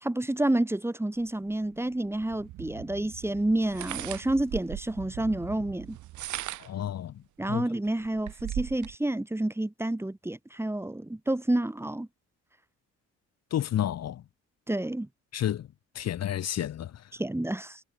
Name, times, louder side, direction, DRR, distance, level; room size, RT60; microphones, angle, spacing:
voice 1, 0.0-6.0 7.4-12.1 14.7-15.1 17.1-17.8, right 1 dB, 10° right, 1.7 m, -29 dB
sound 1, 1.2-6.5, right 17 dB, 90° right, 1.5 m, -47 dB
sound 2, 2.3-2.4 3.6-5.0 6.0-6.8 7.4-7.5 7.9-9.0, right 14 dB, 75° right, 1.0 m, -37 dB
voice 2, 6.6-7.2 7.5-7.7 13.5-14.2 15.3-15.7 15.9-17.1, left 11 dB, 55° left, 1.0 m, -31 dB
cardioid pair, 90°, 30 cm